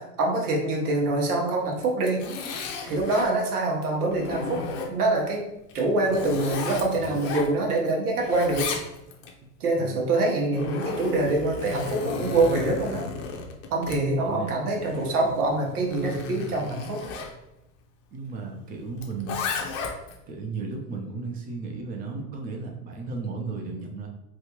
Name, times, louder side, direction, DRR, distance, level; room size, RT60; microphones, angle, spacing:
voice 1, 0.0-2.3 2.8-5.4 5.7-8.7 9.6-13.1 13.7-17.0, right 2 dB, 80° right, 0 dB, 1.0 m, -25 dB
Zipper (clothing), 1.7-3.3 3.8-5.2 5.7-7.9 8.2-9.3 10.2-17.3 19.0-20.2, left 4 dB, 55° left, 0.8 m, -34 dB
voice 2, 14.2-14.5 18.1-19.4 20.3-24.1, right 4 dB, 20° right, 2 dB, 0.5 m, -34 dB
3.2 x 2.4 x 2.9 m, 0.87 s
hypercardioid pair, 105°, 45 cm